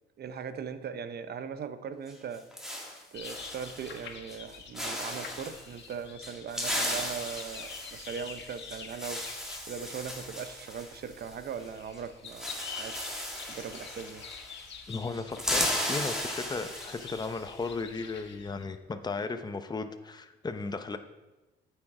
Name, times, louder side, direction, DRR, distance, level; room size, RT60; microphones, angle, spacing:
voice 1, 0.2-2.5 3.1-9.4 9.7-13.0 13.5-14.2, right 7 dB, 55° right, 11 dB, 0.8 m, -39 dB
sound 1, 2.1-4.0 4.3-4.5 4.7-5.6 6.2-11.7 11.9-12.0 12.3-14.7 14.9-17.3, left 1 dB, 5° right, 2.6 m, -36 dB
sound 2, 3.1-18.6, left 6 dB, 65° left, 1.3 m, -47 dB
voice 2, 9.2-9.6 14.9-21.0, left 4 dB, 20° left, 8 dB, 0.7 m, -36 dB
9.2 x 6.6 x 4.8 m, 1.1 s
cardioid pair, 90°, 20 cm